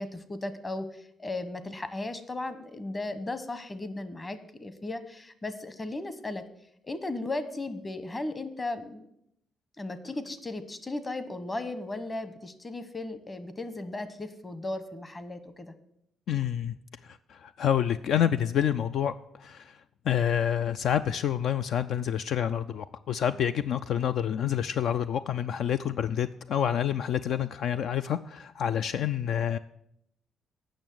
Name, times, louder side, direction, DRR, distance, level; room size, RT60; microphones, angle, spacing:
voice 1, 0.0-6.4 6.8-9.1 9.8-15.7, left 2 dB, 25° left, 12 dB, 1.0 m, -36 dB
voice 2, 16.3-16.8 17.0-29.6, left 9 dB, 70° left, 12 dB, 0.3 m, -28 dB
8.9 x 6.3 x 7.6 m, 0.74 s
cardioid pair, 90°, 0 cm